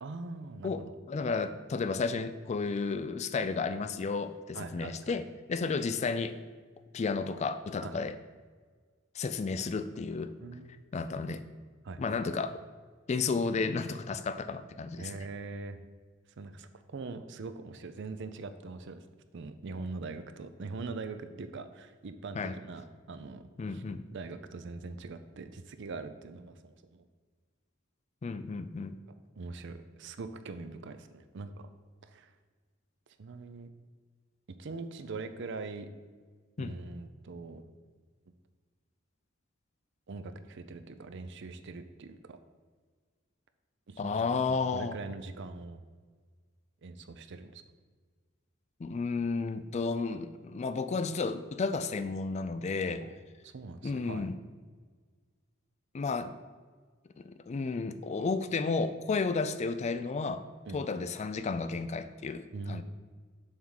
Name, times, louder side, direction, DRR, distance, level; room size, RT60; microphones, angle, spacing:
voice 1, 0.0-0.9 4.5-5.2 7.8-8.0 10.4-10.7 11.8-12.0 15.0-15.8 16.4-19.0 19.3-23.8 24.1-27.0 29.4-31.7 32.0-32.3 33.2-33.7 34.5-35.9 36.6-37.6 40.1-42.4 43.9-45.8 46.8-47.6 53.0-53.1 53.4-54.3 60.7-60.8 62.5-62.8, right 3 dB, 60° right, 10 dB, 0.5 m, -42 dB
voice 2, 0.6-6.3 6.9-8.2 9.1-10.3 10.9-11.4 12.0-12.6 13.1-15.1 22.4-22.5 23.6-24.0 28.2-29.0 36.6-36.8 44.0-45.0 48.8-53.0 53.8-54.4 55.9-56.3 57.2-60.4 60.7-62.8, left 4 dB, 35° left, 11 dB, 0.3 m, -32 dB
7.2 x 3.6 x 6.4 m, 1.5 s
head